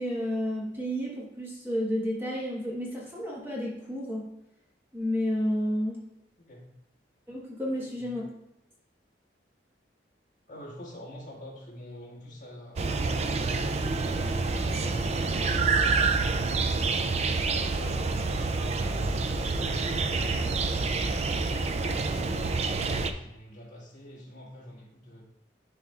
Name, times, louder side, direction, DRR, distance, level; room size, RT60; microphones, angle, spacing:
voice 1, 0.0-4.3 4.9-6.0 7.3-8.2, equal, 15° right, -4 dB, 1.3 m, -31 dB
voice 2, 6.4-6.7 7.8-8.2 10.5-14.1 14.7-17.0 17.5-25.3, equal, 45° left, -4 dB, 1.9 m, -46 dB
sound 1, 12.8-23.1, right 3 dB, 35° right, 0.4 m, -27 dB
11.0 x 4.3 x 2.4 m, 0.84 s
head